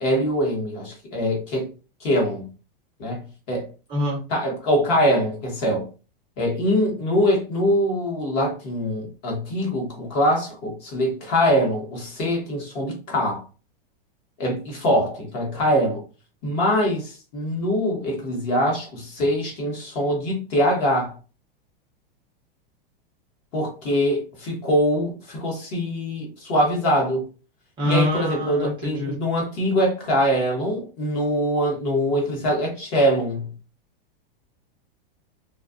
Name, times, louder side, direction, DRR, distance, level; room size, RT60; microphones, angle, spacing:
voice 1, 0.0-1.7 2.0-2.5 3.0-3.7 4.3-5.9 6.4-13.4 14.4-16.0 16.4-21.1 23.5-27.3 27.8-33.5, equal, 35° left, 0.9 m, -23 dB
voice 2, 3.9-4.2 27.8-29.1, left 1 dB, 15° right, 0.5 m, -25 dB
2.5 x 2.2 x 2.4 m
supercardioid pair, 160°, 29 cm